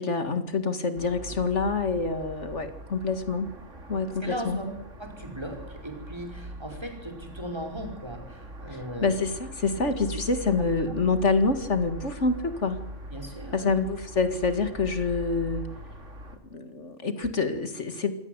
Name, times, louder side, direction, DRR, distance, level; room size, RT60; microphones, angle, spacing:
voice 1, 0.0-3.5 3.9-4.6 9.0-12.8 13.5-15.7 16.5-18.1, left 4 dB, 70° left, 9 dB, 2.3 m, -26 dB
sound 1, 0.9-16.4, right 1 dB, 80° right, 3.2 m, -42 dB
voice 2, 4.2-4.7 5.0-9.2 13.1-13.8, equal, 20° right, 5 dB, 5.3 m, -37 dB
26.0 x 18.0 x 8.1 m, 0.78 s
omnidirectional pair, 1.3 m